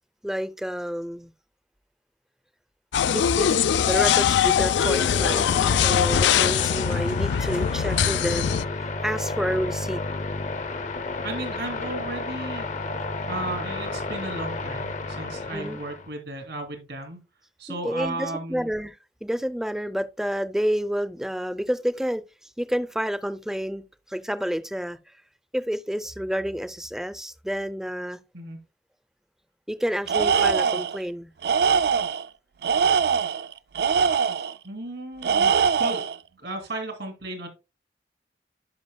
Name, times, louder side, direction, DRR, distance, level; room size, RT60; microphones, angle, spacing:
voice 1, 0.2-1.3 3.1-8.5 8.8-10.0 15.5-15.8 17.7-23.8 24.1-25.0 25.5-28.2 29.7-31.3, equal, 5° right, 0.4 m, -29 dB
sound 1, 2.9-8.6, left 8 dB, 90° left, 0.4 m, -22 dB
sound 2, 4.6-16.1, left 3 dB, 45° left, 0.6 m, -32 dB
voice 2, 11.2-12.7 13.3-17.2 17.6-18.7 28.3-28.6 34.6-36.0 36.4-37.5, right 2 dB, 80° right, 2.5 m, -34 dB
Tools, 30.1-31.0 31.4-32.2 32.6-34.5 35.2-36.2, right 6 dB, 60° right, 0.4 m, -22 dB
10.5 x 5.6 x 2.2 m
head